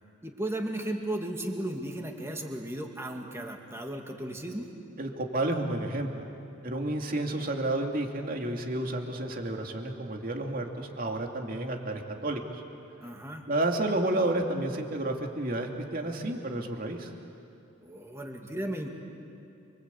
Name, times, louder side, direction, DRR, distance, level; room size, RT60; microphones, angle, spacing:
voice 1, 0.2-4.7 13.0-13.5 17.8-19.0, right 1 dB, 15° right, 2 dB, 2.3 m, -35 dB
voice 2, 5.0-6.2 6.6-12.6 13.5-17.1, right 1 dB, 45° right, 2 dB, 2.6 m, -31 dB
29.5 x 24.5 x 8.4 m, 2.6 s
head